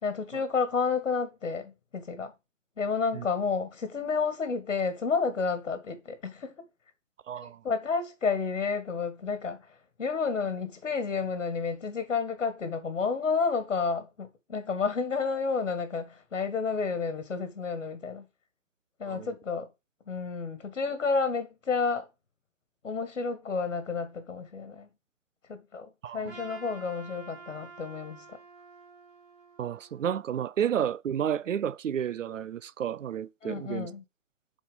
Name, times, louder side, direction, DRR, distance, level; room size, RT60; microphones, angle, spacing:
voice 1, 0.0-2.3 2.8-6.5 7.4-9.6 10.0-18.2 19.0-19.7 20.1-22.1 22.8-24.9 25.5-28.2 33.4-34.0, left 5 dB, 85° left, 2.1 m, -30 dB
voice 2, 7.3-7.6 19.1-19.3 26.0-26.3 29.6-33.9, right 9 dB, 85° right, 0.6 m, -31 dB
Trumpet, 26.3-30.6, right 4 dB, 5° right, 0.3 m, -50 dB
7.4 x 4.3 x 5.4 m
hypercardioid pair, 130°, 37 cm